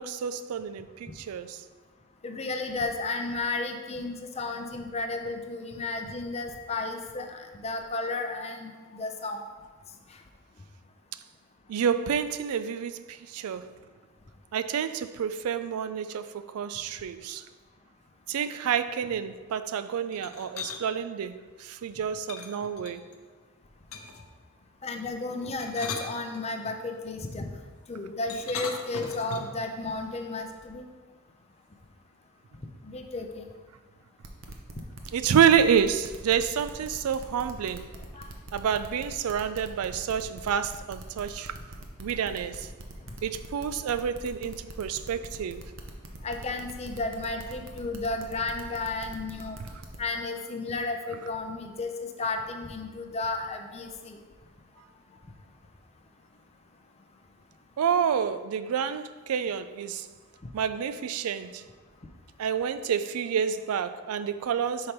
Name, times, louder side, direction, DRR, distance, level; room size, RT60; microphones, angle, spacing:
voice 1, 0.0-1.6 11.7-13.7 14.5-17.4 18.3-21.3 21.6-23.0 35.1-37.9 38.5-41.6 42.0-42.6 43.2-45.6 57.8-60.0 60.5-61.6 62.4-64.9, right 7 dB, 80° right, 0.4 m, -28 dB
voice 2, 2.2-9.4 24.8-27.5 27.9-30.8 32.8-33.4 38.1-38.2 46.2-49.6 50.0-54.2, left 3 dB, 30° left, 0.5 m, -33 dB
sound 1, 20.1-20.8 22.3-23.2 23.9-24.3 25.4-26.8 28.3-29.6, left 5 dB, 75° left, 0.7 m, -38 dB
sound 2, 34.2-50.0, right 2 dB, 60° right, 0.8 m, -43 dB
5.6 x 5.1 x 4.4 m
head